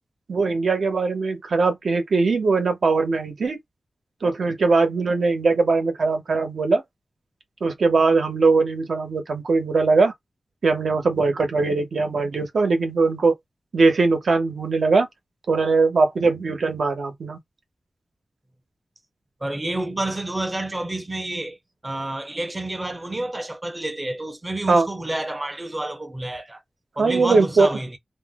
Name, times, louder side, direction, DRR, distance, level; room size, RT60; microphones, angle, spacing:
voice 1, 0.3-3.6 4.2-6.8 7.6-10.1 10.6-13.3 13.7-15.1 15.5-17.4 24.7-24.9 27.0-27.7, right 4 dB, 70° right, 0.9 m, -20 dB
voice 2, 19.4-21.6 21.8-26.6 27.0-28.0, right 1 dB, 20° right, 0.6 m, -29 dB
2.5 x 2.0 x 3.5 m
wide cardioid pair, 130°, 0 cm